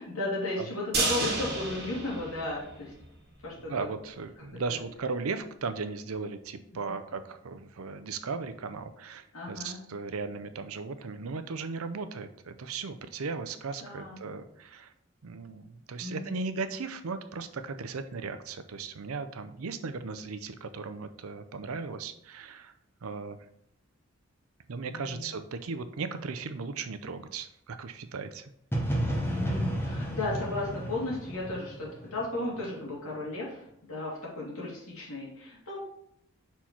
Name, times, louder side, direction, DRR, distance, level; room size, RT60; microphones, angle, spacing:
voice 1, 0.0-2.9 3.4-3.9 4.5-4.8 6.7-7.0 9.3-9.8 13.8-14.2 16.0-16.6 24.8-25.3 29.2-35.8, left 2 dB, 85° left, -4 dB, 2.4 m, -35 dB
sound 1, 0.9-3.1 3.4-3.5 3.9-4.0, right 3 dB, 50° right, 1.7 m, -31 dB
voice 2, 3.7-14.9 15.2-22.7 23.0-23.5 24.7-28.5, right 4 dB, 85° right, 10 dB, 0.6 m, -37 dB
sound 2, 28.7-32.6, equal, 10° left, 1.0 m, -32 dB
5.7 x 4.5 x 4.5 m, 0.74 s
head